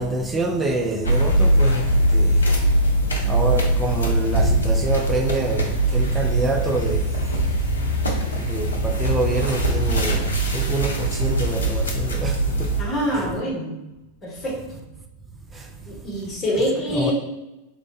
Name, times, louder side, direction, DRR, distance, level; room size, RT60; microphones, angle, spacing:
voice 1, 0.0-2.5 3.3-7.1 7.4-7.8 8.3-12.7 15.5-15.7 16.9-17.1, right 2 dB, 15° right, 0.4 m, -26 dB
sound 1, 1.0-12.8, right 1 dB, 75° left, 0.6 m, -21 dB
voice 2, 12.8-13.7 14.2-14.8 15.9-17.1, left 1 dB, 25° left, 1.3 m, -25 dB
3.2 x 2.5 x 3.4 m
figure-of-eight pair, 90°, 0 cm